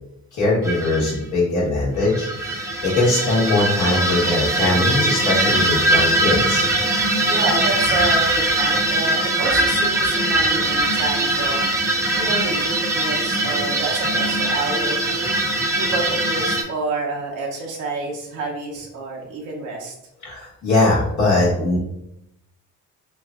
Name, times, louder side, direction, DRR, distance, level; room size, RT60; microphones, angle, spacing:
voice 1, 0.3-6.7 20.2-21.8, left 2 dB, 70° left, -6 dB, 1.3 m, -21 dB
sound 1, 0.6-1.1 2.0-16.6, right 1 dB, 10° right, 0.6 m, -21 dB
voice 2, 7.2-11.7 12.1-15.3 15.7-19.9, right 3 dB, 85° right, -2 dB, 0.8 m, -29 dB
3.1 x 2.4 x 3.6 m, 0.82 s
cardioid pair, 90°, 30 cm